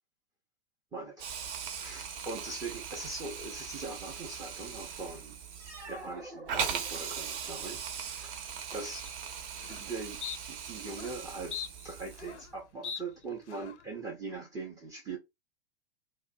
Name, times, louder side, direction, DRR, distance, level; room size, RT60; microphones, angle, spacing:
voice 1, 0.9-1.2 1.8-5.4 5.9-9.1 9.7-15.2, right 3 dB, 10° right, 0.4 m, -41 dB
Hiss, 1.2-12.5, right 7 dB, 50° right, 0.7 m, -40 dB
sound 1, 5.5-7.4, right 2 dB, 90° right, 1.0 m, -47 dB
sound 2, 9.1-9.2 9.6-9.8 10.2-10.4 10.9-11.1 11.5-12.5 12.8-13.0 13.5-13.8, left 8 dB, 90° left, 0.5 m, -40 dB
2.4 x 2.2 x 2.5 m
hypercardioid pair, 115°, 33 cm